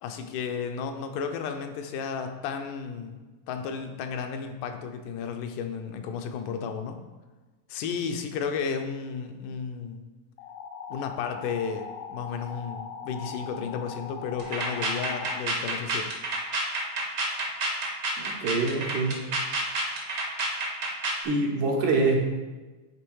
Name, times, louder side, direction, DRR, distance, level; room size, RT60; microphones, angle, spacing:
voice 1, 0.0-7.0 7.7-10.0 10.9-16.1, left 6 dB, 85° left, 6 dB, 2.2 m, -33 dB
sound 1, 10.4-15.4, left 6 dB, 70° left, 1.3 m, -40 dB
sound 2, 14.4-21.2, right 2 dB, 60° right, 1.1 m, -29 dB
voice 2, 18.2-19.2 21.2-22.2, right 3 dB, 80° right, -1 dB, 2.7 m, -25 dB
9.7 x 3.5 x 4.7 m, 1.2 s
omnidirectional pair, 3.6 m